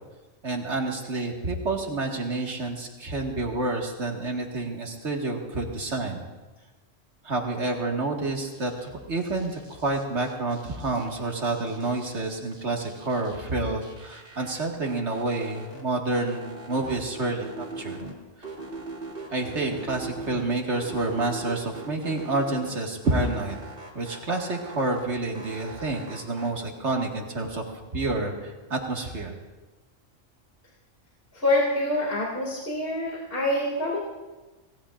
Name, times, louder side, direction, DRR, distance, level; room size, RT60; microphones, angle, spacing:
voice 1, 0.4-6.2 7.2-18.0 19.3-23.6 23.9-27.7 27.9-29.4, right 2 dB, 65° right, 1 dB, 2.2 m, -29 dB
sound 1, 8.3-8.9 9.2-11.2 11.5-13.5 13.8-15.8 16.1-18.1 18.4-20.4 20.7-22.7 23.0-25.1 25.3-26.5, right 3 dB, 45° right, 3.2 m, -41 dB
voice 2, 31.3-34.0, left 1 dB, 50° left, -4 dB, 2.7 m, -26 dB
26.5 x 18.5 x 2.5 m, 1.2 s
omnidirectional pair, 1.3 m